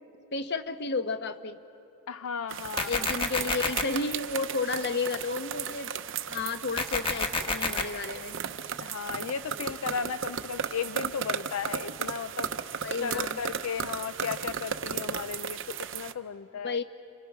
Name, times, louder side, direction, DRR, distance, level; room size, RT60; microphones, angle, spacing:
voice 1, 0.3-1.6 2.9-5.9 6.3-8.4 12.8-13.4 16.6-16.8, left 4 dB, 55° left, 8 dB, 1.1 m, -32 dB
voice 2, 2.1-3.2 8.8-12.5 13.0-16.8, left 6 dB, 80° left, 12 dB, 0.5 m, -35 dB
sound 1, 2.5-16.1, right 7 dB, 60° right, 0.8 m, -35 dB
sound 2, 2.8-3.8 6.8-7.8, left 3 dB, 25° left, 1.3 m, -28 dB
28.5 x 28.5 x 6.2 m, 2.8 s
head